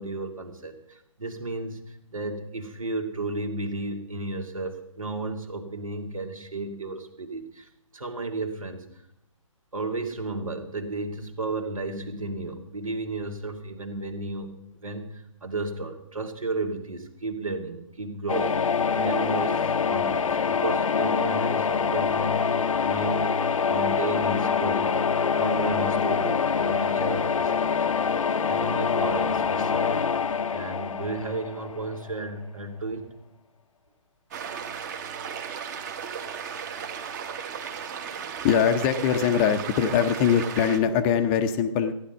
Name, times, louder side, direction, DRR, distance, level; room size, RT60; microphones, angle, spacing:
voice 1, 0.0-8.8 9.7-14.6 14.8-23.3 23.7-28.1 28.5-33.1 37.5-37.6, right 3 dB, 85° right, 5 dB, 2.3 m, -33 dB
sound 1, 18.3-32.1, left 6 dB, 80° left, 0.7 m, -25 dB
sound 2, 34.3-40.8, right 7 dB, 35° right, 1.3 m, -35 dB
voice 2, 38.4-41.9, left 8 dB, 20° left, 9 dB, 0.6 m, -22 dB
14.5 x 10.0 x 5.5 m, 0.77 s
hypercardioid pair, 150°, 17 cm